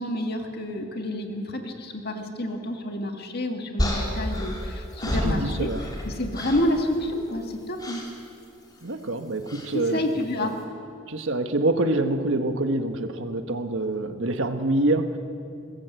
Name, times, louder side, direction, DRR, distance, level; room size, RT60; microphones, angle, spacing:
voice 1, 0.0-8.0 9.7-10.6, left 1 dB, 50° left, 3 dB, 2.0 m, -29 dB
sound 1, 3.8-6.1 6.3-6.8 7.8-8.1 9.5-9.7, equal, 20° left, 3.7 m, -29 dB
voice 2, 5.1-5.8 8.8-10.0 10.4-10.5 11.1-15.2, right 2 dB, 75° right, 7 dB, 1.4 m, -26 dB
23.0 x 19.5 x 8.2 m, 2.5 s
head